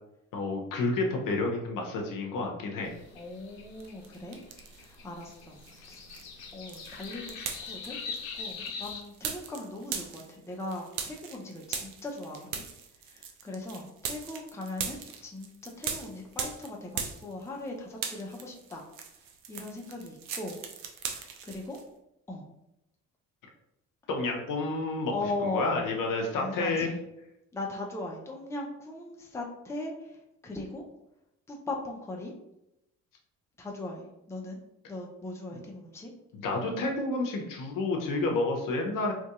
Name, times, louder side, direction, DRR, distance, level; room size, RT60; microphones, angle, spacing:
voice 1, 0.3-2.9 24.1-25.1 25.4-26.9 35.5-35.6 36.3-39.1, left 2 dB, 55° left, 1 dB, 0.7 m, -30 dB
sound 1, 2.8-9.0, left 5 dB, 90° left, 0.5 m, -42 dB
voice 2, 3.1-4.4 4.7-6.0 6.5-12.6 13.1-18.8 19.5-20.6 21.1-21.8 22.3-22.5 25.1-25.8 26.3-27.0 27.5-30.8 31.5-32.3 33.6-34.6 34.9-36.1, left 2 dB, 5° left, 0 dB, 0.6 m, -39 dB
sound 2, 3.8-5.0 5.3-17.7 17.9-21.8, right 7 dB, 60° right, 0.6 m, -39 dB
2.9 x 2.6 x 2.4 m, 0.86 s
hypercardioid pair, 50°, 40 cm